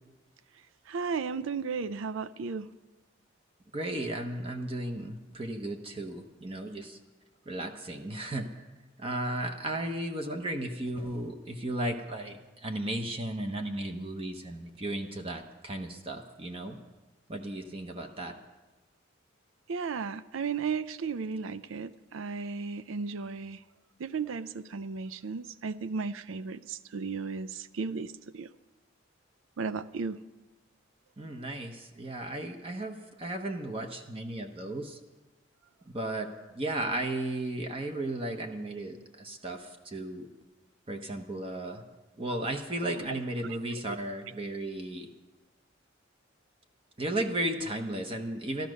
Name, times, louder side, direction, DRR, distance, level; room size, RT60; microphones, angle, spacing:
voice 1, 0.9-2.7 19.7-23.6 24.0-28.5 29.6-30.2 43.1-43.2 43.9-44.0, right 5 dB, 85° right, 0.5 m, -34 dB
voice 2, 3.7-7.0 7.5-8.7 9.0-16.8 17.3-18.4 31.2-35.0 35.9-40.3 40.9-41.8 42.2-45.1 47.0-48.7, right 1 dB, 30° right, 1.0 m, -35 dB
13.5 x 13.0 x 6.3 m
head